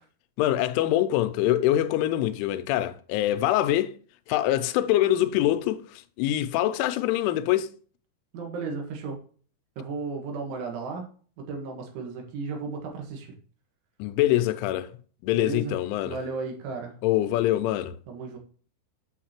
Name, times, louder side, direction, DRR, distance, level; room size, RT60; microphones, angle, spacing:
voice 1, 0.4-3.9 4.3-7.7 14.0-14.9 15.2-16.2 17.0-18.0, left 13 dB, 90° left, 3.1 m, -24 dB
voice 2, 8.3-9.2 9.8-11.0 11.4-13.3 15.3-15.8 16.0-16.9 18.1-18.4, right 4 dB, 80° right, 4.0 m, -34 dB
8.4 x 6.5 x 2.9 m
omnidirectional pair, 5.4 m